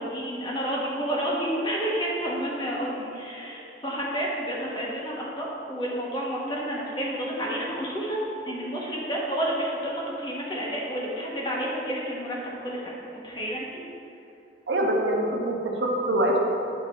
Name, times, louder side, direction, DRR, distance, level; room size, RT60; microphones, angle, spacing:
voice 1, 0.0-8.2 8.5-13.0 13.2-13.7, equal, 25° left, -4 dB, 1.3 m, -30 dB
voice 2, 14.7-16.4, right 1 dB, 85° right, -1 dB, 1.1 m, -24 dB
9.9 x 4.0 x 4.1 m, 2.7 s
head